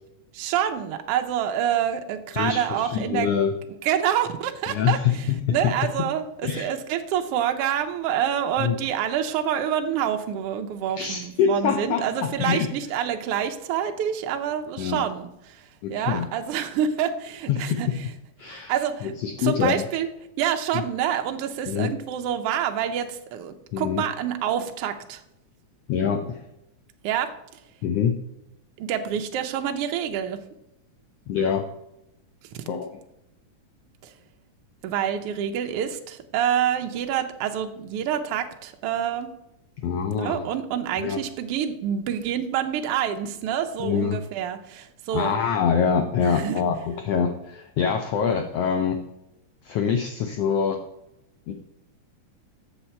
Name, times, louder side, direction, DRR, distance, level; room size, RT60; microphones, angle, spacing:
voice 1, 0.3-3.3 3.8-5.0 5.5-15.6 15.9-17.9 18.4-19.1 19.4-20.1 20.4-25.2 27.0-27.3 28.8-30.4 34.0-34.1 34.8-39.3 40.2-45.4 46.2-46.6, right 9 dB, 80° right, 5 dB, 1.3 m, -27 dB
voice 2, 2.3-3.5 4.7-5.6 6.4-6.7 8.6-8.8 11.0-12.7 14.8-15.0 15.8-16.3 17.5-18.0 18.4-18.7 19.0-19.8 20.7-20.8 21.7-21.9 23.7-24.0 25.9-26.4 27.8-28.1 31.3-31.7 32.7-33.0 39.8-40.4 41.0-41.2 43.8-44.2 45.1-49.0 49.6-50.8 51.5-51.6, left 7 dB, 80° left, 5 dB, 1.4 m, -25 dB
7.2 x 7.1 x 4.4 m, 0.85 s
omnidirectional pair, 3.6 m